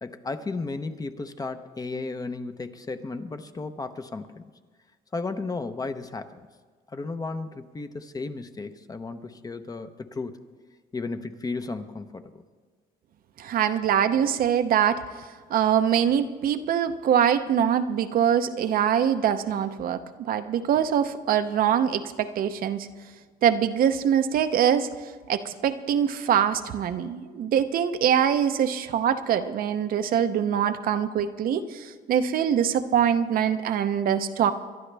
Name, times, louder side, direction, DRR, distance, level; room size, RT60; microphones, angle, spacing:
voice 1, 0.0-4.4 5.1-6.5 6.9-10.4 10.9-12.4, left 3 dB, 20° left, 9 dB, 0.8 m, -34 dB
voice 2, 13.4-22.9 23.4-24.9 25.3-34.5, right 9 dB, 60° right, 9 dB, 0.7 m, -24 dB
23.0 x 11.5 x 3.4 m, 1.5 s
cardioid pair, 110°, 17 cm